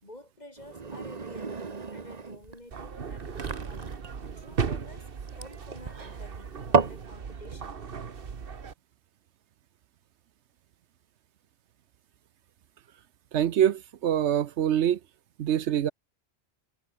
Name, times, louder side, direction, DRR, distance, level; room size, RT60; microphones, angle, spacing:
voice 1, 0.0-1.6 1.9-4.0 4.4-7.9, left 1 dB, 40° left, 5.4 m, -50 dB
sound 1, 0.6-7.1, right 4 dB, 40° right, 1.2 m, -32 dB
sound 2, 2.7-8.7, right 6 dB, 55° right, 1.4 m, -36 dB
voice 2, 13.3-15.0 15.4-15.9, right 10 dB, 80° right, 1.0 m, -25 dB
omnidirectional pair, 1.1 m